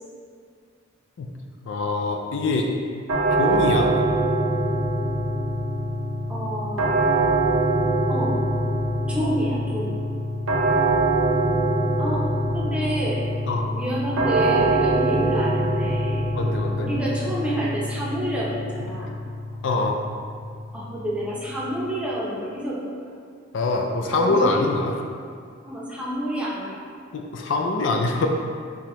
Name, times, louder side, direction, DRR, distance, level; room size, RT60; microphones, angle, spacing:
voice 1, 1.7-2.7 3.3-3.9 13.5-13.7 15.8-15.9 16.3-16.9 19.6-20.0 23.5-24.9 27.1-28.3, left 3 dB, 65° left, 2 dB, 0.4 m, -24 dB
sound 1, 3.1-22.0, right 2 dB, 75° right, 0.7 m, -24 dB
voice 2, 6.3-7.6 8.1-8.3 9.1-10.0 12.0-12.2 12.5-13.2 13.7-16.3 16.8-19.2 20.7-23.0 24.1-24.6 25.6-26.8, right 1 dB, 5° right, -6 dB, 0.7 m, -29 dB
5.5 x 2.8 x 3.1 m, 2.2 s
head